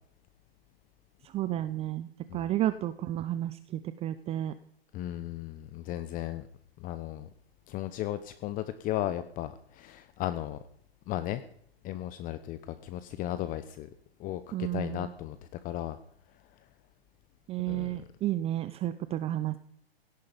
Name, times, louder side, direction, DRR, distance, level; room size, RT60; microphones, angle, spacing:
voice 1, 1.2-4.5 14.5-15.1 17.5-19.6, right 13 dB, 20° right, 13 dB, 0.7 m, -32 dB
voice 2, 4.9-6.5 6.8-7.3 7.7-10.6 11.1-11.4 11.8-13.9 14.2-15.4 15.6-16.0 17.7-18.0, left 13 dB, 25° left, 12 dB, 1.0 m, -35 dB
17.5 x 14.5 x 5.2 m, 0.68 s
hypercardioid pair, 130°, 31 cm